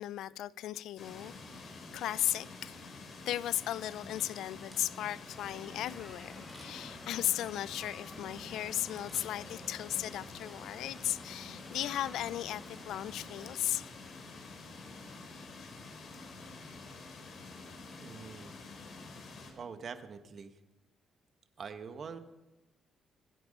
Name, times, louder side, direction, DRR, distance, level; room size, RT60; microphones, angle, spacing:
voice 1, 0.0-1.3 1.9-13.9 15.6-15.7, left 12 dB, 80° left, 0.4 m, -36 dB
sound 1, 1.0-19.5, left 3 dB, 55° left, 4.0 m, -48 dB
Camera, 4.7-5.3 6.4-7.0 9.0-10.0 10.4-10.5, equal, 5° right, 3.5 m, -58 dB
sound 2, 5.3-13.5, left 1 dB, 15° left, 7.8 m, -52 dB
voice 2, 17.9-18.5 19.5-20.5 21.6-22.2, right 6 dB, 50° right, 1.4 m, -44 dB
25.5 x 9.4 x 5.4 m
cardioid pair, 90°, 0 cm